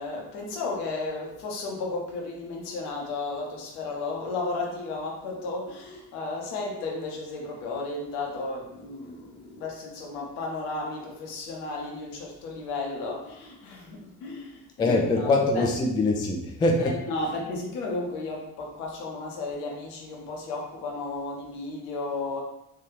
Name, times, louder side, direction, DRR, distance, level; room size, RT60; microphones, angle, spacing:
voice 1, 0.0-15.7 16.8-22.4, left 3 dB, 65° left, -1 dB, 1.0 m, -34 dB
voice 2, 14.8-17.0, left 2 dB, 10° left, 1 dB, 0.3 m, -23 dB
3.8 x 2.7 x 3.0 m, 0.83 s
figure-of-eight pair, 50°, 47 cm